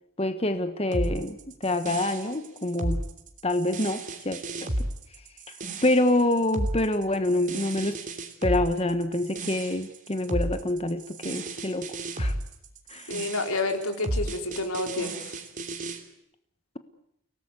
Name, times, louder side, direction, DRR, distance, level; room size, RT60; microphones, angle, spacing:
voice 1, 0.2-1.4 1.6-3.0 3.4-4.7 5.8-8.0 8.4-12.3 12.9-13.1, left 1 dB, 30° left, 9 dB, 1.3 m, -26 dB
sound 1, 0.9-16.0, right 1 dB, 35° right, 3.1 m, -33 dB
voice 2, 13.1-15.4, left 2 dB, 85° left, 5 dB, 4.4 m, -29 dB
30.0 x 18.5 x 9.7 m, 0.79 s
head